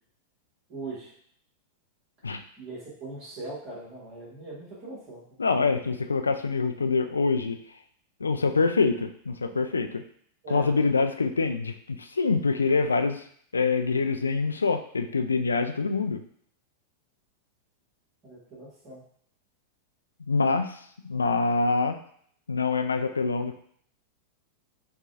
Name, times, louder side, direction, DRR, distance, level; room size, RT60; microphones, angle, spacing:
voice 1, 0.7-1.1 2.6-5.2 5.9-6.0 10.4-10.7 18.2-19.0, right 2 dB, 35° right, -7 dB, 1.5 m, -40 dB
voice 2, 5.4-7.6 8.2-10.0 10.5-13.2 13.5-16.2 20.3-20.8 21.0-22.0 22.5-23.6, left 4 dB, 75° left, 7 dB, 0.3 m, -25 dB
5.6 x 2.3 x 2.5 m, 0.63 s
figure-of-eight pair, 90°, 0 cm